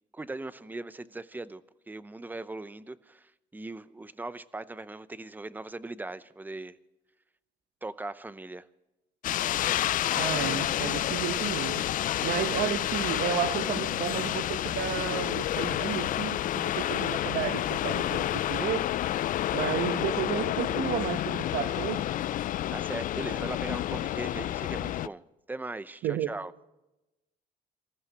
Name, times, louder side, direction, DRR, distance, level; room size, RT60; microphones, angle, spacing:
voice 1, 0.1-1.6 1.9-6.7 7.8-8.7 22.7-25.2 25.5-26.5, right 2 dB, 10° right, 15 dB, 0.7 m, -39 dB
sound 1, 9.2-25.1, left 13 dB, 55° left, 0.4 m, -29 dB
voice 2, 10.2-11.8 12.2-18.9 19.5-22.0 26.0-26.3, right 11 dB, 70° right, 11 dB, 1.1 m, -32 dB
26.5 x 15.0 x 3.0 m, 0.97 s
cardioid pair, 110°, 17 cm